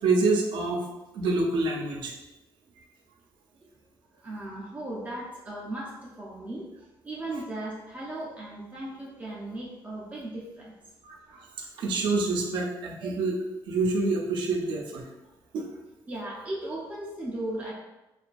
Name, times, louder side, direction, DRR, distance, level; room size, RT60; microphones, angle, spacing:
voice 1, 0.0-0.8 1.1-2.1 11.0-15.0 15.5-15.7, right 3 dB, 90° right, 0 dB, 0.5 m, -27 dB
voice 2, 4.2-6.7 7.0-10.7 16.1-17.7, right 1 dB, 20° right, -6 dB, 0.3 m, -37 dB
2.6 x 2.3 x 2.2 m, 1.0 s
cardioid pair, 165°, 8 cm